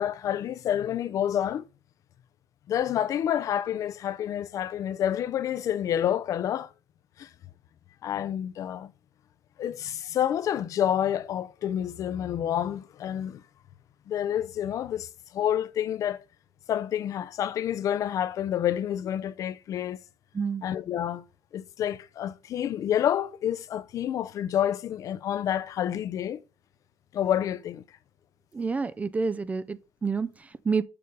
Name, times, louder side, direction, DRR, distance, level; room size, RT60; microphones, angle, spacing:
voice 1, 0.0-1.7 2.7-6.7 7.2-7.3 8.0-8.9 9.6-13.4 14.1-16.2 16.7-20.0 20.6-21.2 21.5-26.4 27.1-27.8, left 10 dB, 50° left, 0.6 m, -28 dB
voice 2, 20.3-20.7 28.5-30.8, right 5 dB, 20° right, 0.4 m, -29 dB
6.8 x 4.9 x 5.5 m
cardioid pair, 120°, 7 cm